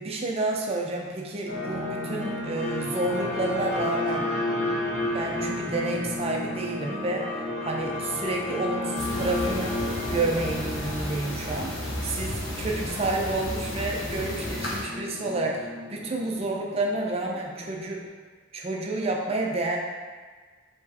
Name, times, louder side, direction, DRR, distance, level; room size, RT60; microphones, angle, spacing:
voice 1, 0.0-4.3 5.1-9.8 10.1-11.7 12.0-12.3 12.6-18.0 18.5-19.8, right 2 dB, 30° right, 0 dB, 0.4 m, -29 dB
sound 1, 1.5-17.8, left 2 dB, 30° left, 1.5 m, -33 dB
sound 2, 8.9-14.8, left 1 dB, 75° left, 0.8 m, -33 dB
5.0 x 3.0 x 2.6 m, 1.5 s
head